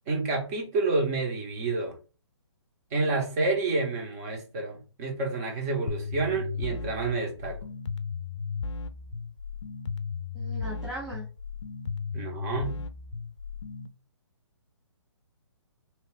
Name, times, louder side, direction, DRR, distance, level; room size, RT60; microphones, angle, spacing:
voice 1, 0.1-1.9 2.9-7.6 12.1-12.8, right 3 dB, 30° right, 2 dB, 1.0 m, -29 dB
sound 1, 5.9-13.9, left 5 dB, 80° left, 0.4 m, -35 dB
voice 2, 10.3-11.3, equal, 5° right, -5 dB, 0.6 m, -38 dB
2.9 x 2.4 x 3.4 m, 0.35 s
hypercardioid pair, 145°, 15 cm